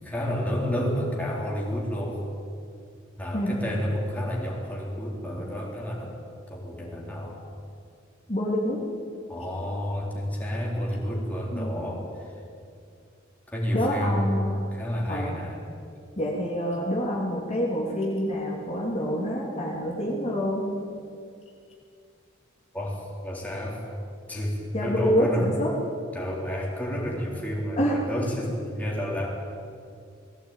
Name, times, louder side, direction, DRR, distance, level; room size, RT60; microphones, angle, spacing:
voice 1, 0.0-2.2 3.2-6.1 6.5-7.4 9.3-12.1 13.5-14.2 14.7-15.6 20.0-20.1 22.7-23.8 24.3-25.5 26.1-29.3, equal, 10° left, -3 dB, 3.8 m, -30 dB
voice 2, 8.3-8.8 11.5-11.7 13.7-14.6 15.1-15.4 16.2-20.6 24.7-25.7 27.8-28.0, equal, 35° left, -3 dB, 3.1 m, -27 dB
19.0 x 16.5 x 9.2 m, 2.4 s
head